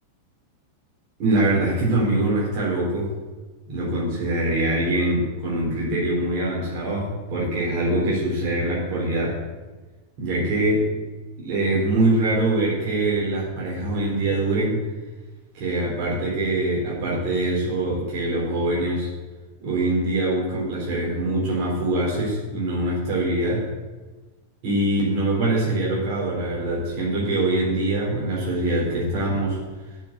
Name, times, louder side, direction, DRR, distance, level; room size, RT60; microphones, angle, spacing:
voice 1, 1.2-3.1 3.7-9.3 10.2-10.9 11.4-14.8 15.5-19.1 19.6-23.6 24.6-29.6, right 1 dB, 45° right, -5 dB, 4.0 m, -23 dB
7.4 x 7.2 x 8.3 m, 1.3 s
figure-of-eight pair, 90°, 0 cm